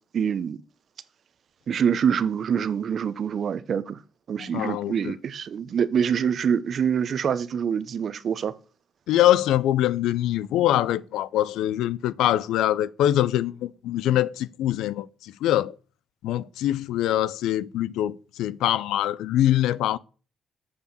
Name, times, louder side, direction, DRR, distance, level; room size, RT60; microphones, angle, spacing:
voice 1, 0.1-0.6 1.7-4.0 4.3-8.5, right 7 dB, 55° right, 0.7 m, -25 dB
voice 2, 4.4-5.1 9.1-15.7 16.2-20.0, left 13 dB, 90° left, 0.4 m, -24 dB
8.1 x 4.8 x 6.8 m
cardioid pair, 90°, 0 cm